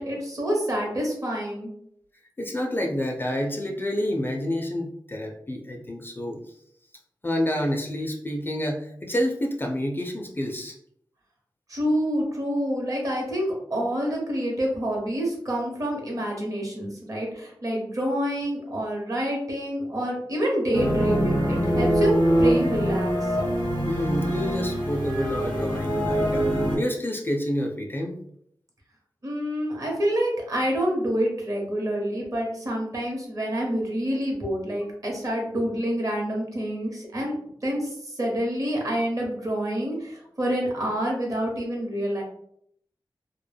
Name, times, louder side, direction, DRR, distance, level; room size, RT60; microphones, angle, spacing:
voice 1, 0.0-1.7 11.7-22.1 22.4-23.4 29.2-37.3 37.6-42.2, equal, 45° right, -1 dB, 0.9 m, -27 dB
voice 2, 2.4-6.6 7.2-10.8 23.9-26.5 26.8-28.2, left 1 dB, 25° left, 1 dB, 0.4 m, -28 dB
sound 1, 20.7-26.8, equal, 70° right, 1.1 m, -24 dB
2.1 x 2.1 x 3.3 m, 0.69 s
wide cardioid pair, 110°, 8 cm